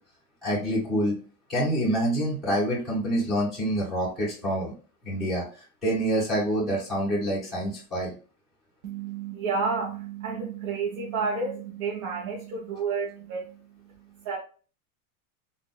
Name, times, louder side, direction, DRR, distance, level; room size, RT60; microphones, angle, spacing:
voice 1, 0.4-1.1 1.5-4.7 5.0-5.4 5.8-8.1, right 1 dB, ahead, -8 dB, 2.0 m, -26 dB
voice 2, 8.8-14.4, right 5 dB, 65° right, -4 dB, 1.4 m, -31 dB
3.7 x 3.5 x 2.2 m, 0.38 s
supercardioid pair, 165°, 44 cm